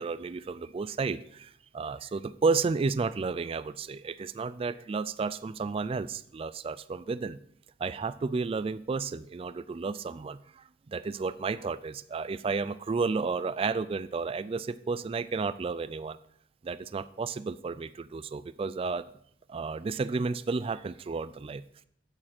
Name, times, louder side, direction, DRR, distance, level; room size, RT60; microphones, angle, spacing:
voice 1, 0.0-7.4 7.8-16.2 16.6-19.1 19.5-21.6, right 4 dB, 30° right, 15 dB, 0.3 m, -32 dB
8.7 x 8.7 x 4.3 m, 0.66 s
head